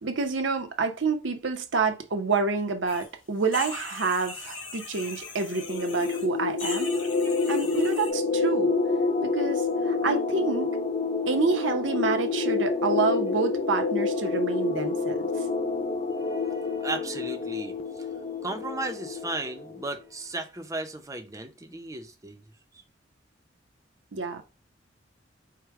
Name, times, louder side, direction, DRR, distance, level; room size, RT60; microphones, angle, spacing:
voice 1, 0.0-6.9 7.5-8.7 9.2-10.8 11.3-15.3 24.1-24.4, right 4 dB, 70° right, 0.7 m, -28 dB
sound 1, 2.9-3.1 3.4-6.3 6.6-8.1, left 3 dB, 85° left, 1.7 m, -40 dB
sound 2, 5.5-19.8, left 4 dB, 30° left, 0.4 m, -28 dB
voice 2, 16.2-17.8 18.4-22.4, right 2 dB, 15° right, 0.6 m, -35 dB
4.8 x 2.2 x 4.6 m
head